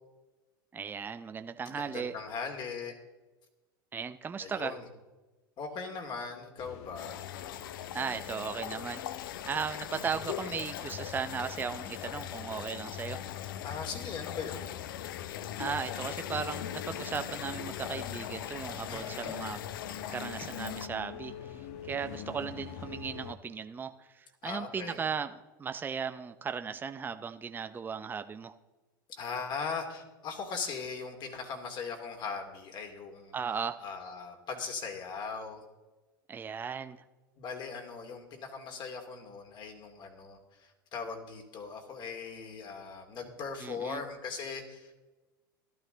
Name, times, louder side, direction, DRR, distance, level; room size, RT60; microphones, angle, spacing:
voice 1, 0.7-2.1 3.9-4.7 7.9-9.0 9.4-13.2 15.6-28.5 33.3-33.8 36.3-37.0 43.6-44.0, right 6 dB, 15° right, 9 dB, 0.6 m, -37 dB
voice 2, 1.6-3.0 4.4-4.9 5.6-7.2 9.7-10.1 13.6-14.7 18.9-19.4 24.4-25.0 29.2-33.3 33.8-35.6 37.4-44.9, left 5 dB, 40° left, 3 dB, 2.7 m, -39 dB
sound 1, 6.6-23.3, left 9 dB, 55° left, 1.1 m, -44 dB
sound 2, 7.0-20.9, left 11 dB, 75° left, 0.6 m, -41 dB
14.0 x 12.0 x 4.0 m, 1.1 s
hypercardioid pair, 100°, 11 cm